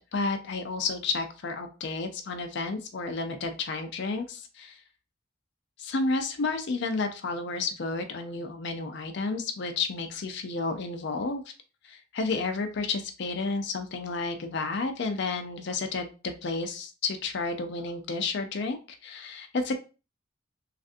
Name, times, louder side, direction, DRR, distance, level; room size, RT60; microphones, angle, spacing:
voice 1, 0.1-4.8 5.8-11.4 11.8-19.7, left 3 dB, 55° left, 7 dB, 0.4 m, -31 dB
3.2 x 2.5 x 2.5 m, 0.32 s
head